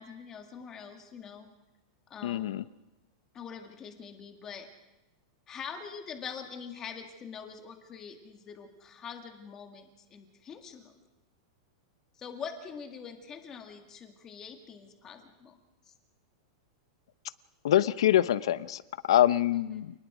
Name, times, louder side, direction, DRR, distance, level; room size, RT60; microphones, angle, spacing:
voice 1, 0.0-1.5 2.1-2.5 3.3-4.7 5.5-10.9 12.2-15.6 15.9-16.0 19.5-19.8, left 6 dB, 20° left, 5 dB, 2.0 m, -44 dB
voice 2, 2.2-2.6 17.6-18.8 19.1-19.9, left 12 dB, 75° left, 16 dB, 0.8 m, -24 dB
28.5 x 20.0 x 5.1 m, 1.0 s
supercardioid pair, 170°, 3 cm